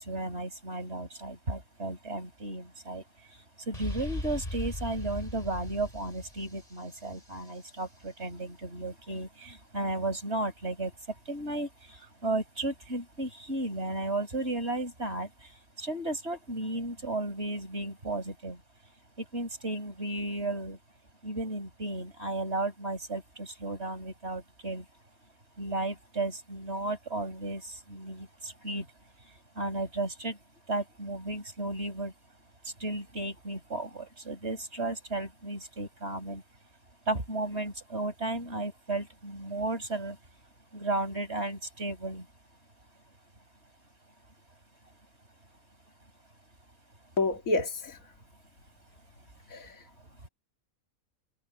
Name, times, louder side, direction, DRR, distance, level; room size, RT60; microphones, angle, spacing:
voice 1, 0.0-18.6 19.2-20.8 21.2-24.9 25.6-28.9 29.2-30.4 30.7-32.1 32.6-36.4 37.1-40.2 40.7-42.3 50.0-50.1, right 2 dB, 50° right, 5.3 m, -34 dB
sound 1, 3.7-7.5, left 1 dB, 25° left, 6.3 m, -38 dB
voice 2, 47.2-48.1 49.5-49.9, left 2 dB, 70° left, 2.5 m, -30 dB
omnidirectional pair, 1.5 m